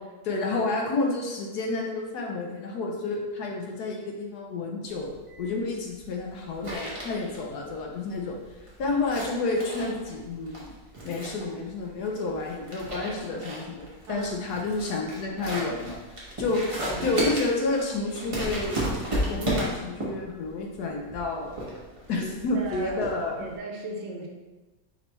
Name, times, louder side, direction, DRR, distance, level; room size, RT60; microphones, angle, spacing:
voice 1, 0.2-5.1 5.4-8.4 8.8-10.8 11.0-16.0 16.4-16.6 17.0-18.8 19.3-21.5 22.1-23.4, left 3 dB, 70° left, 0 dB, 1.1 m, -30 dB
sound 1, 4.9-23.6, right 1 dB, 25° right, 0.8 m, -34 dB
voice 2, 16.8-17.2 22.2-22.3 22.5-23.0 23.4-24.3, right 2 dB, 75° right, 0 dB, 1.4 m, -37 dB
5.0 x 3.3 x 3.0 m, 1.2 s
omnidirectional pair, 2.0 m